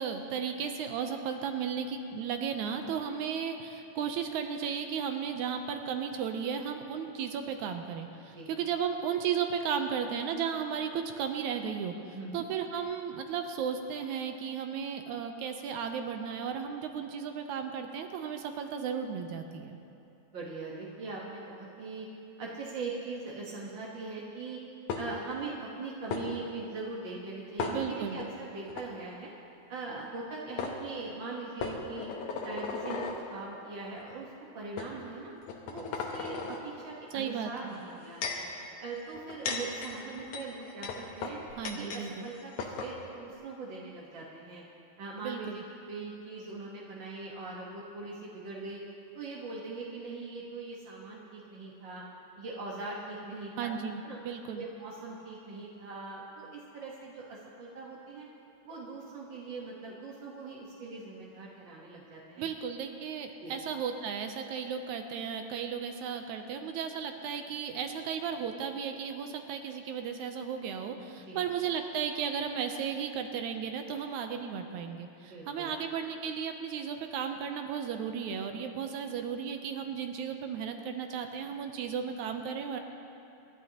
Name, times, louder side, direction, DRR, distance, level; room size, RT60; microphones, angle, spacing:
voice 1, 0.0-19.8 27.7-28.2 37.1-37.7 41.6-42.3 45.2-45.6 53.6-54.7 62.4-82.8, right 7 dB, 75° right, 5 dB, 1.9 m, -35 dB
voice 2, 12.1-12.4 20.3-22.1 22.4-24.6 24.9-29.3 29.7-32.1 32.4-33.0 33.3-35.3 35.7-38.4 38.8-41.4 41.8-44.6 45.0-48.8 49.1-52.0 52.4-53.7 54.0-54.2 54.5-58.3 58.6-62.5 63.4-63.5 71.2-71.4 75.2-75.7, right 3 dB, 55° right, -4 dB, 1.4 m, -41 dB
sound 1, 24.9-25.4 26.1-26.2 27.6-28.3 28.7-28.9 30.1-30.2 30.6-30.8 31.6-33.2 34.0-34.1 34.8-34.9 35.4-36.6 37.7-38.5 39.1-42.1 42.3-42.4 42.6-42.9, left 5 dB, 70° left, 2.3 m, -36 dB
26.5 x 11.5 x 2.9 m, 2.7 s
omnidirectional pair, 3.8 m